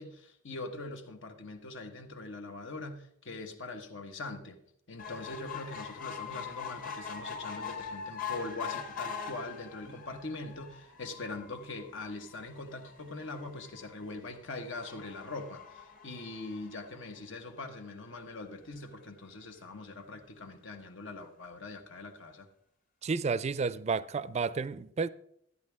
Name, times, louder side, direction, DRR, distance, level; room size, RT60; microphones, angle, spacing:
voice 1, 0.0-4.6 4.9-22.5, left 2 dB, 80° left, 1.4 m, -42 dB
sound 1, 5.0-17.6 18.2-18.3 18.5-18.6 18.9-19.0, left 6 dB, 45° left, 1.4 m, -43 dB
voice 2, 23.0-25.1, right 4 dB, 35° right, 0.4 m, -31 dB
13.5 x 9.7 x 3.5 m
head